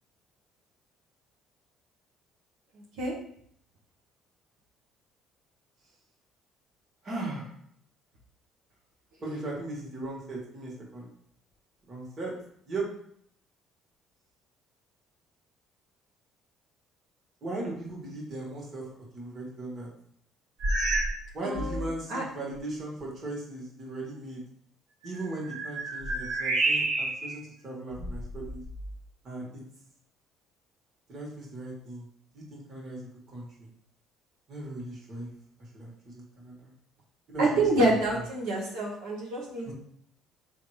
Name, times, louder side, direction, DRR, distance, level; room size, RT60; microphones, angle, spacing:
voice 1, 7.0-7.5 9.2-11.1 11.9-12.3 12.7-12.9 17.4-18.8 19.1-19.9 21.3-24.4 25.0-28.6 29.2-29.6 31.1-32.0 32.3-33.7 34.5-35.3 35.6-36.7 37.3-38.2 39.6-39.7, right 2 dB, 45° right, -3 dB, 1.7 m, -38 dB
sound 1, 20.6-21.2 21.5-21.9 22.5-22.6 25.0-27.4 27.9-28.9, right 2 dB, 60° right, 1.1 m, -30 dB
voice 2, 21.4-22.2 37.4-39.7, right 2 dB, 85° right, -5 dB, 1.1 m, -27 dB
3.7 x 2.9 x 4.8 m, 0.67 s
cardioid pair, 95°, 0 cm